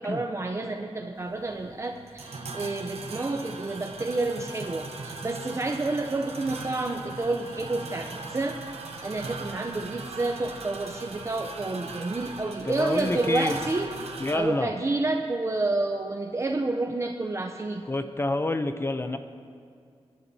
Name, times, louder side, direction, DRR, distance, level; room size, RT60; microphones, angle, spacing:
voice 1, 0.0-8.6 9.0-13.9 14.3-17.8, right 2 dB, 30° right, 4 dB, 0.5 m, -29 dB
sound 1, 1.2-14.4, right 3 dB, 85° right, 1.0 m, -39 dB
voice 2, 12.7-13.6 14.2-14.7 17.9-19.2, left 2 dB, 25° left, 8 dB, 0.5 m, -28 dB
23.5 x 11.5 x 2.7 m, 2.3 s
wide cardioid pair, 130°, 10 cm